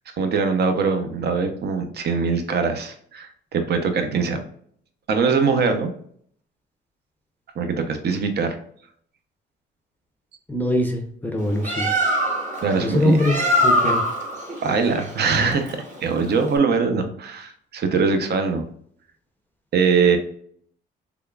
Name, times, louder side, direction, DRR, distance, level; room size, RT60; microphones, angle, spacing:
voice 1, 0.2-4.4 5.1-5.9 7.6-8.6 12.6-13.2 14.6-18.7 19.7-20.2, right 5 dB, 55° right, 6 dB, 0.7 m, -22 dB
voice 2, 10.5-11.9 12.8-13.4 13.6-14.0, left 1 dB, 10° left, 2 dB, 0.6 m, -22 dB
Bird, 11.4-16.6, equal, 40° right, 1.1 m, -24 dB
3.5 x 3.4 x 2.3 m, 0.62 s
cardioid pair, 90°, 20 cm